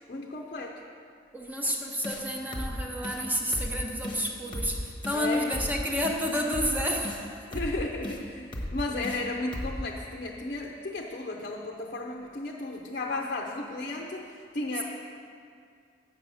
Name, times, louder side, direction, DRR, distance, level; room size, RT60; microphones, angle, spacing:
voice 1, 0.1-0.8 5.1-5.5 7.5-14.8, left 2 dB, 50° left, 0 dB, 0.6 m, -34 dB
voice 2, 1.3-7.6, equal, 10° right, 0 dB, 0.8 m, -30 dB
sound 1, 2.0-2.2 2.5-2.7 3.0-3.2 3.5-3.7 4.0-4.2 4.5-4.7 5.0-5.2 5.5-5.7 6.0-6.2 6.5-6.7 7.0-7.2 7.5-7.7 8.0-8.2 8.5-8.7 9.0-9.2 9.5-9.7, left 1 dB, 25° left, 1.0 m, -35 dB
7.9 x 6.9 x 6.2 m, 2.3 s
head